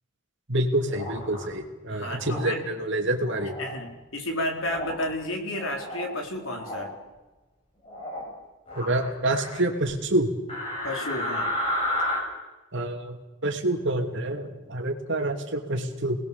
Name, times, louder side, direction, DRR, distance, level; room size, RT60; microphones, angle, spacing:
voice 1, 0.5-3.5 8.8-10.3 12.7-13.2 13.4-16.2, right 1 dB, 55° right, 4 dB, 2.9 m, -27 dB
sound 1, 0.9-1.4 2.2-2.5 3.2-3.8 4.6-5.1 5.5-6.1 6.4-6.9 7.9-8.3 8.7-9.6 10.5-12.2, left 1 dB, 25° left, 7.8 m, -32 dB
voice 2, 1.9-2.7 3.6-6.9 10.8-11.5, left 1 dB, 60° left, 2 dB, 4.3 m, -32 dB
29.5 x 20.5 x 7.2 m, 1.1 s
head